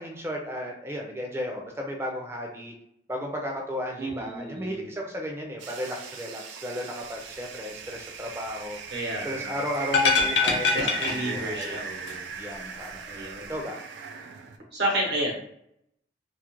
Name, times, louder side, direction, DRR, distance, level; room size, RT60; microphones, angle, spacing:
voice 1, 0.0-2.7 3.1-8.8 9.2-11.8 12.4-13.2 13.5-13.8, equal, 15° right, 1 dB, 0.3 m, -34 dB
voice 2, 4.0-4.9 8.9-9.5 10.7-12.3 13.1-13.5 14.7-15.4, right 1 dB, 70° right, -2 dB, 0.8 m, -31 dB
sound 1, 5.6-14.6, right 5 dB, 90° right, 0.3 m, -39 dB
sound 2, 9.9-11.8 12.1-12.2, left 4 dB, 80° left, 0.5 m, -24 dB
2.3 x 2.1 x 2.9 m, 0.75 s
head